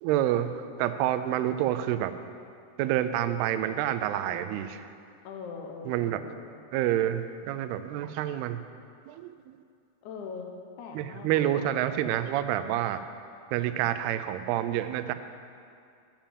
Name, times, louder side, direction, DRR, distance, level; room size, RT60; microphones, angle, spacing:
voice 1, 0.0-2.1 2.8-4.8 5.9-6.2 6.7-8.6 9.1-9.3 11.0-13.0 13.5-15.1, right 12 dB, 85° right, 11 dB, 2.5 m, -28 dB
voice 2, 5.2-6.7 10.0-10.5 10.8-11.8, left 5 dB, 80° left, 2 dB, 1.7 m, -41 dB
9.0 x 8.7 x 7.3 m, 2.4 s
omnidirectional pair, 4.6 m